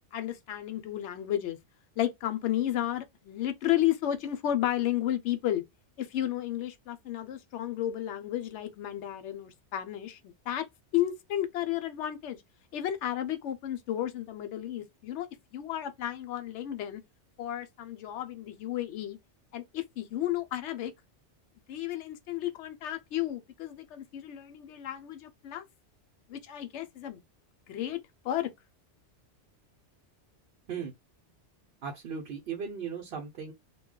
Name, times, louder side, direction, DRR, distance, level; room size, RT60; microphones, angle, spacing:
voice 1, 0.1-1.6 2.0-5.6 6.0-10.2 10.5-10.7 10.9-12.4 12.7-15.3 15.5-17.0 17.4-19.2 19.5-20.9 21.7-25.6 26.3-27.2 27.7-28.5, left 12 dB, 80° left, 0.9 m, -32 dB
voice 2, 31.8-33.5, right 6 dB, 60° right, 0.8 m, -37 dB
2.2 x 2.2 x 3.6 m
omnidirectional pair, 1.2 m